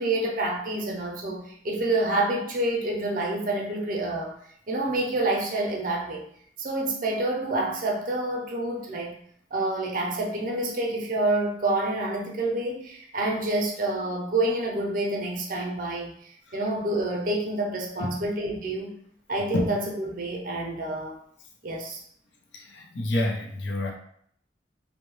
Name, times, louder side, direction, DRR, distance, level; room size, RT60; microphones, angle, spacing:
voice 1, 0.0-4.3 4.7-6.2 6.6-9.1 9.5-18.9 19.3-21.2 21.6-22.0, right 2 dB, 50° right, 0 dB, 0.5 m, -28 dB
voice 2, 22.5-23.9, left 1 dB, 90° left, 1 dB, 0.6 m, -28 dB
2.7 x 2.1 x 3.0 m, 0.65 s
head